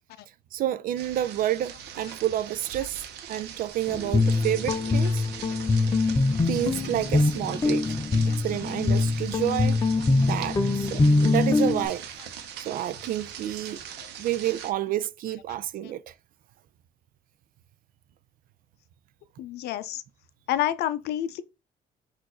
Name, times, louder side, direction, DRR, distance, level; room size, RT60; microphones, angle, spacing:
voice 1, 0.5-5.2 6.5-7.9 8.2-9.8 10.2-12.0 12.6-13.8 14.2-16.1, right 12 dB, 55° right, 0.4 m, -29 dB
sound 1, 0.9-14.7, right 8 dB, 80° right, 0.8 m, -41 dB
Guitar, 3.9-11.9, left 3 dB, 20° left, 0.6 m, -23 dB
voice 2, 13.7-14.1 15.5-15.6 19.4-20.0 20.5-21.4, left 12 dB, 75° left, 0.5 m, -30 dB
4.4 x 2.6 x 4.3 m
cardioid pair, 110°, 17 cm